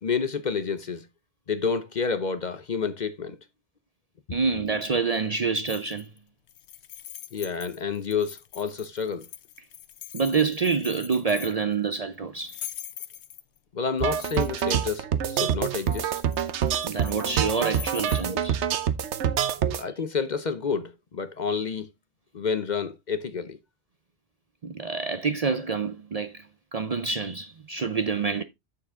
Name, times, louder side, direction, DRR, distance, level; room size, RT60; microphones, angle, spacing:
voice 1, 0.0-1.1 1.5-3.4 7.3-9.3 13.7-16.1 18.3-18.4 19.6-21.9 22.3-23.6, left 5 dB, 50° left, 0.7 m, -29 dB
voice 2, 4.3-6.1 10.1-12.6 16.8-18.6 24.6-26.5 26.7-28.4, right 5 dB, 45° right, 0.6 m, -27 dB
sound 1, 5.7-6.2 6.5-11.7 12.4-13.6 14.0-14.7 15.7-18.3, left 11 dB, 80° left, 1.0 m, -43 dB
sound 2, 14.0-19.8, right 9 dB, 85° right, 1.1 m, -26 dB
7.2 x 6.7 x 3.5 m
omnidirectional pair, 1.1 m